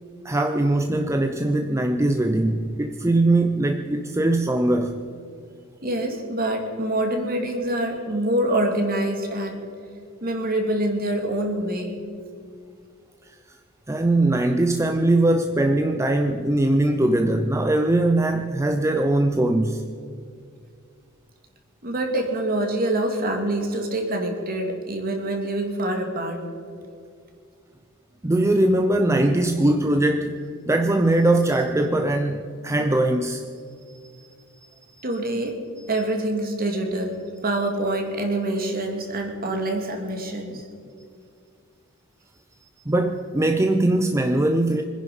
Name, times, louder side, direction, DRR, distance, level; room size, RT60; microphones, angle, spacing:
voice 1, 0.2-5.0 13.9-19.9 28.2-33.4 34.2-34.3 42.9-44.8, right 1 dB, 15° right, 0.6 m, -21 dB
voice 2, 5.8-9.6 10.2-12.0 21.8-26.4 35.0-35.5 35.9-37.2 37.4-40.7, right 1 dB, 45° right, 2.5 m, -25 dB
24.5 x 10.5 x 5.5 m
head